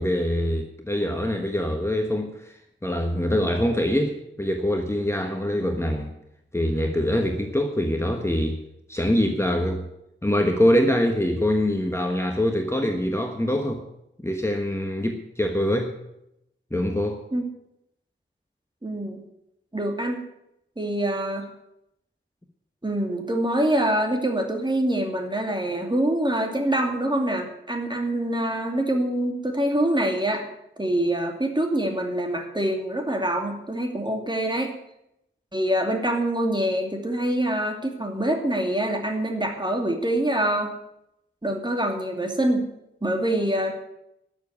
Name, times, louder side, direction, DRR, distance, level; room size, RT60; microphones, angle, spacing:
voice 1, 0.0-2.5 2.8-6.1 6.5-8.6 8.9-9.9 10.2-13.8 14.2-15.9 16.7-17.3, left 1 dB, 15° left, 3 dB, 1.3 m, -24 dB
voice 2, 18.8-19.2 19.7-20.2 20.8-21.5 22.8-30.5 30.8-34.7 35.5-40.7 41.4-42.7 43.0-43.7, right 1 dB, 20° right, 3 dB, 2.5 m, -25 dB
12.5 x 7.4 x 9.4 m, 0.82 s
wide cardioid pair, 80°, 21 cm